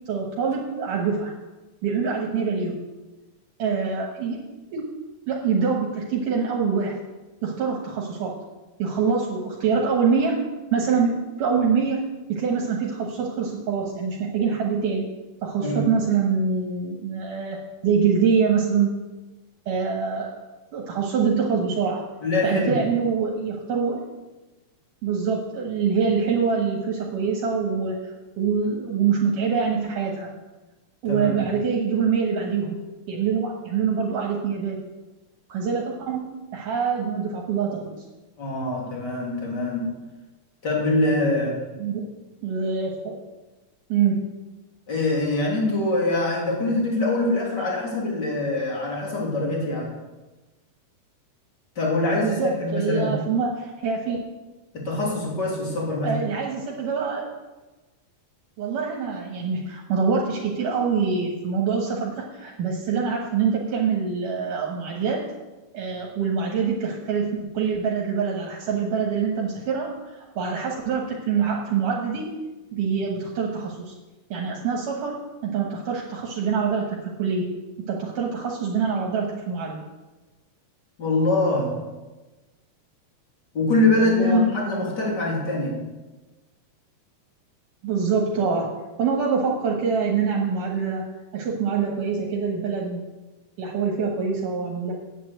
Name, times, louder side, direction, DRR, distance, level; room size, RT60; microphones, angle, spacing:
voice 1, 0.1-1.3 1.8-2.8 3.6-4.4 4.7-4.9 5.3-7.0 7.4-8.4 8.8-10.4 10.7-12.0 12.3-15.1 15.4-17.6 17.8-18.9 19.7-20.3 20.7-22.0 22.4-24.0 25.0-30.3 31.0-32.8 33.1-34.8 35.5-37.8 41.8-41.9 42.4-43.1 43.9-44.3 52.2-54.2 56.0-57.3 58.6-65.2 65.7-72.4 72.7-73.9 74.3-75.2 75.4-77.5 77.8-79.8 84.0-84.4 87.8-88.7 89.0-91.1 91.3-93.0 93.6-94.9, right 5 dB, 75° right, -1 dB, 2.8 m, -25 dB
voice 2, 22.2-22.8 31.1-31.4 38.4-39.9 40.6-41.6 44.9-49.9 51.8-53.1 54.7-56.1 81.0-81.8 83.5-85.8, left 2 dB, 35° left, -2 dB, 3.3 m, -23 dB
8.9 x 8.7 x 7.8 m, 1.2 s
omnidirectional pair, 3.8 m